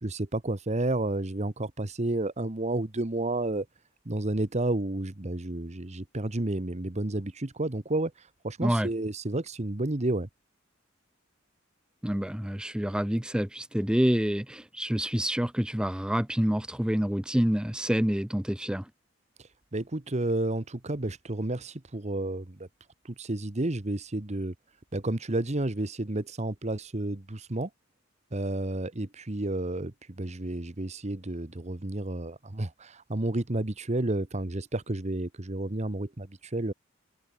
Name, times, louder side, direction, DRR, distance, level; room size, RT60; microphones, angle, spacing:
voice 1, 0.0-3.7 4.0-8.1 8.4-10.3 19.7-22.7 23.2-24.5 24.9-27.7 28.3-36.7, right 2 dB, 35° right, 1.2 m, -31 dB
voice 2, 12.0-18.9, equal, 5° right, 0.6 m, -27 dB
head